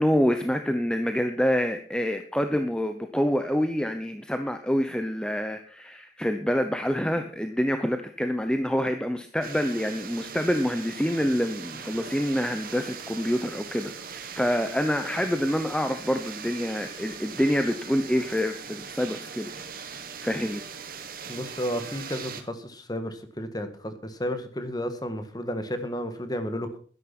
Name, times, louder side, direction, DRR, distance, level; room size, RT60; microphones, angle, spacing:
voice 1, 0.0-19.9 20.2-20.7, equal, 5° left, 7 dB, 0.8 m, -27 dB
sound 1, 9.4-22.4, right 6 dB, 50° right, 1.7 m, -40 dB
voice 2, 21.3-26.8, equal, 20° left, 9 dB, 1.7 m, -32 dB
12.5 x 11.0 x 6.0 m, 0.42 s
head